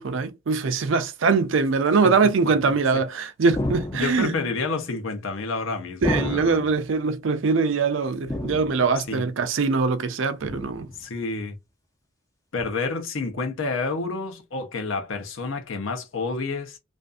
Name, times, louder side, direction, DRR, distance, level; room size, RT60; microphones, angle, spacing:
voice 1, 0.0-4.3 6.0-10.9, right 4 dB, 65° right, 0.5 m, -22 dB
sound 1, 3.5-4.4 6.0-6.8 8.3-9.0 10.4-11.0 12.6-12.7, left 1 dB, 15° left, 0.4 m, -30 dB
voice 2, 3.9-6.7 9.0-9.2 10.9-11.6 12.5-16.8, left 3 dB, 70° left, 0.7 m, -29 dB
2.5 x 2.5 x 2.3 m
head